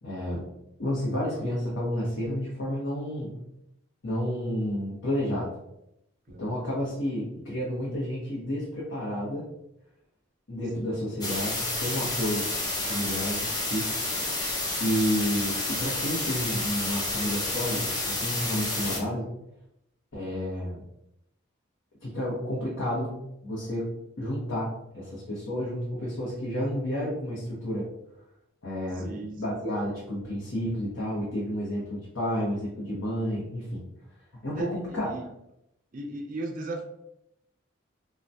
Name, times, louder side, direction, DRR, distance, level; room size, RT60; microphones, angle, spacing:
voice 1, 0.0-0.5 0.8-3.3 4.0-5.5 6.4-9.5 10.5-12.5 12.9-13.9 14.8-19.3 20.1-20.8 22.0-23.9 24.2-27.8 28.6-33.8 34.4-35.1, equal, 80° left, -6 dB, 0.8 m, -31 dB
voice 2, 6.3-6.9 7.4-7.5 10.7-11.0 28.9-29.3 34.5-35.2 35.9-36.8, right 2 dB, 40° right, 3 dB, 0.4 m, -38 dB
sound 1, 11.2-19.0, left 2 dB, 20° left, 0.4 m, -30 dB
2.6 x 2.2 x 3.3 m, 0.81 s
head